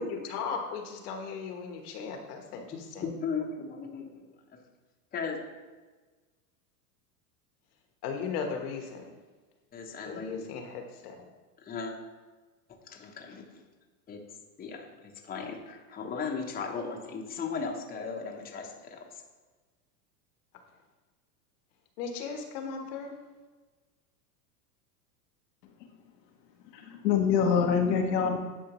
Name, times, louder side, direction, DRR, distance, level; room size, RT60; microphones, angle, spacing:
voice 1, 0.0-3.0 8.0-9.1 10.0-11.2 22.0-23.1, left 5 dB, 65° left, 4 dB, 1.3 m, -37 dB
voice 2, 3.0-4.3 5.1-5.4 9.7-10.5 11.6-11.9 12.8-13.6 14.1-14.2 14.6-19.2, left 5 dB, 20° left, 1 dB, 0.9 m, -37 dB
voice 3, 26.7-28.4, left 6 dB, 85° left, 2 dB, 1.2 m, -25 dB
10.5 x 4.5 x 3.1 m, 1.3 s
supercardioid pair, 125°, 48 cm